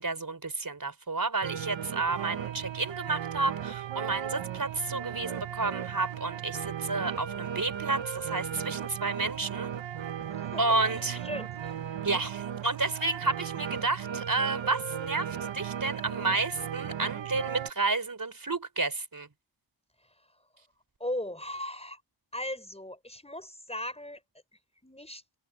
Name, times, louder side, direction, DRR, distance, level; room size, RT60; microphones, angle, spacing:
voice 1, 0.0-9.7 10.6-11.2 12.0-19.3, right 3 dB, 45° right, 4.9 m, -31 dB
sound 1, 1.4-17.7, right 9 dB, 85° right, 1.0 m, -36 dB
voice 2, 10.3-11.7 20.0-20.4 21.0-22.0 22.3-24.2 24.8-25.2, left 1 dB, 15° left, 5.4 m, -38 dB
cardioid pair, 50°, 44 cm